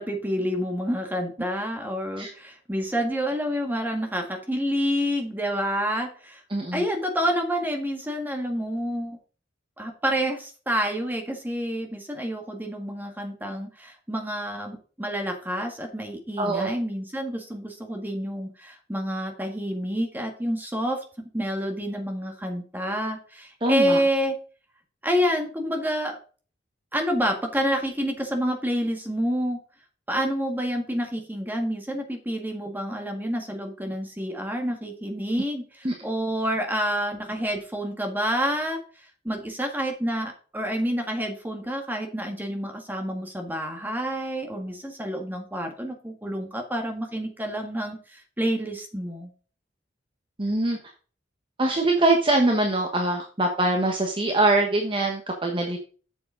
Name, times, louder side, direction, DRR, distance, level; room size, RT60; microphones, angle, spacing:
voice 1, 0.0-6.4 6.7-9.2 9.8-24.3 25.0-26.2 26.9-29.6 30.1-38.8 39.2-49.3, equal, 10° right, 3 dB, 1.7 m, -28 dB
voice 2, 6.5-6.8 16.4-16.7 23.6-24.0 35.8-35.9 50.4-50.8 51.6-55.8, right 2 dB, 25° right, 2 dB, 1.1 m, -23 dB
7.9 x 7.0 x 3.8 m, 0.38 s
head